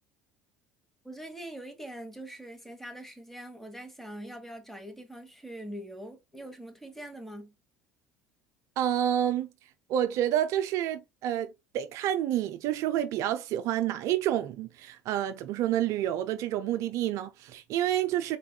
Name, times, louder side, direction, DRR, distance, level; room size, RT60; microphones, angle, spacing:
voice 1, 1.0-7.5, right 1 dB, 5° left, 1.2 m, -43 dB
voice 2, 8.8-9.5 9.9-18.4, right 11 dB, 55° right, 0.3 m, -29 dB
3.9 x 3.4 x 2.3 m
hypercardioid pair, 65°, 6 cm